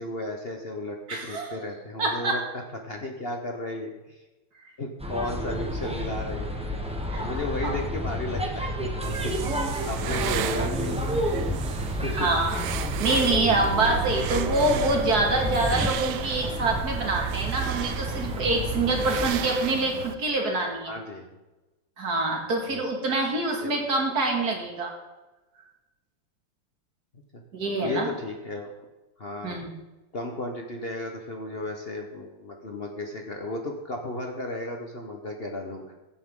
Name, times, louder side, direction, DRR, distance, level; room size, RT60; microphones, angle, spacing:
voice 1, 0.0-1.0 1.2-2.4 2.8-4.2 4.8-6.5 7.1-11.1 11.8-12.3 20.9-21.4 22.7-22.9 23.6-23.7 27.3-27.4 27.8-28.7 29.2-29.6 30.1-35.9, left 2 dB, 40° left, 2 dB, 0.9 m, -34 dB
voice 2, 1.1-1.6 2.0-2.4 7.1-7.3 7.6-7.8 12.1-12.6 13.0-20.9 22.0-25.0 27.5-28.1 29.4-29.7, right 2 dB, 50° right, 1 dB, 2.6 m, -25 dB
sound 1, 5.0-19.3, equal, 5° right, 0.5 m, -30 dB
sound 2, 9.0-20.1, right 10 dB, 70° right, 1.0 m, -35 dB
16.0 x 8.5 x 3.8 m, 1.1 s
omnidirectional pair, 2.3 m